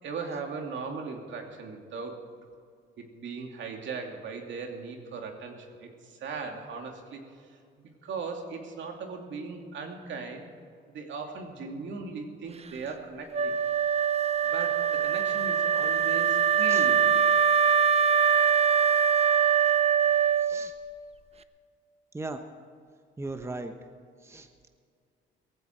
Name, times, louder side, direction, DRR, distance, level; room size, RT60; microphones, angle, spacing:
voice 1, 0.0-2.2 3.0-7.2 7.8-10.5 10.9-13.5 14.4-17.1, right 4 dB, 70° right, 3 dB, 2.5 m, -38 dB
Wind instrument woodwind instrument, 13.3-20.9, right 7 dB, 30° right, 0.6 m, -23 dB
voice 2, 20.4-20.7 22.1-22.4 23.2-23.7 24.2-24.7, right 2 dB, 15° right, 7 dB, 1.0 m, -38 dB
17.5 x 15.0 x 4.5 m, 2.2 s
cardioid pair, 90°, 20 cm